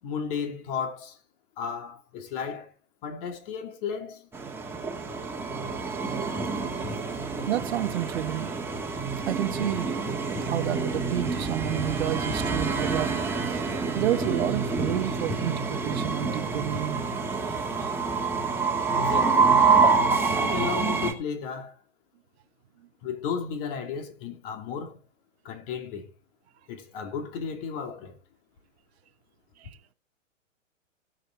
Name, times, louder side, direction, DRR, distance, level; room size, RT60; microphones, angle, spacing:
voice 1, 0.0-1.2 1.6-2.7 3.0-4.3 18.9-19.5 20.4-21.8 23.0-25.0 25.4-26.1 26.7-28.2, left 6 dB, 45° left, 2.7 m, -34 dB
Train, 4.3-21.1, right 4 dB, 5° right, 2.1 m, -27 dB
voice 2, 7.5-8.5 9.3-13.6 13.9-17.0 29.6-29.7, right 13 dB, 55° right, 0.9 m, -30 dB
20.0 x 6.8 x 3.6 m
hypercardioid pair, 120°, 39 cm